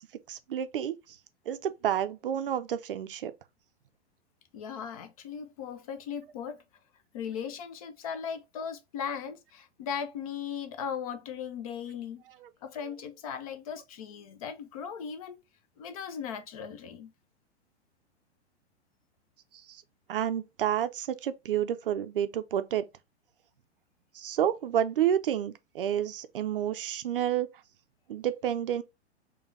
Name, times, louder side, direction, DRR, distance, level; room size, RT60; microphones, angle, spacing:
voice 1, 0.3-1.0 1.5-3.3 12.4-12.5 19.7-19.8 20.1-22.9 24.1-27.5 28.1-28.8, right 10 dB, 55° right, 0.5 m, -29 dB
voice 2, 4.5-6.6 7.1-12.2 12.6-15.4 15.8-17.1, left 7 dB, 35° left, 0.4 m, -38 dB
4.9 x 2.2 x 3.1 m
figure-of-eight pair, 105°, 33 cm